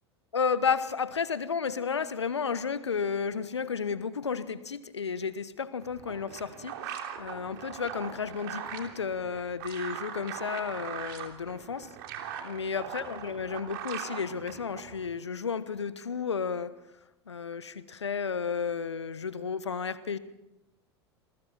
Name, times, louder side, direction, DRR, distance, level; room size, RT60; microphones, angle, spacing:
voice 1, 0.3-11.9 12.4-16.7 17.3-20.2, left 6 dB, 80° left, 15 dB, 1.2 m, -32 dB
sound 1, 5.8-15.1, right 9 dB, 55° right, 3.1 m, -41 dB
27.5 x 21.5 x 4.5 m, 0.94 s
figure-of-eight pair, 80°, 14 cm